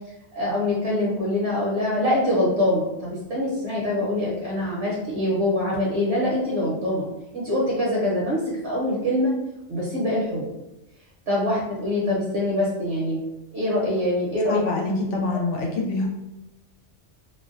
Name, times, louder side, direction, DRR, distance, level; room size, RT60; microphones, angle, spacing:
voice 1, 0.3-7.1 7.3-9.3 9.7-10.5 11.3-13.2 13.5-14.6, left 1 dB, 65° right, -6 dB, 1.0 m, -24 dB
voice 2, 14.5-16.1, left 2 dB, 85° left, 1 dB, 0.9 m, -25 dB
2.5 x 2.1 x 2.4 m, 0.91 s
omnidirectional pair, 1.2 m